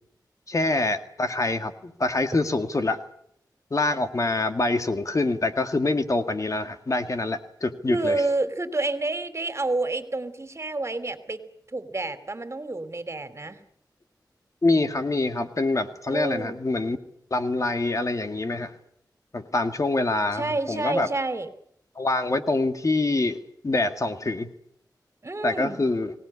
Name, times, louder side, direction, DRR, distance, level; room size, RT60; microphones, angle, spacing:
voice 1, 0.5-3.0 3.7-8.2 14.6-17.0 17.3-18.7 19.3-21.1 22.0-23.4 23.6-24.5 25.4-26.1, left 2 dB, 45° left, 7 dB, 2.1 m, -25 dB
voice 2, 7.9-11.4 11.7-13.6 16.1-16.6 20.3-21.5 25.2-25.8, right 2 dB, 40° right, 10 dB, 3.0 m, -29 dB
24.5 x 18.5 x 9.8 m, 0.72 s
wide cardioid pair, 80°, 7 cm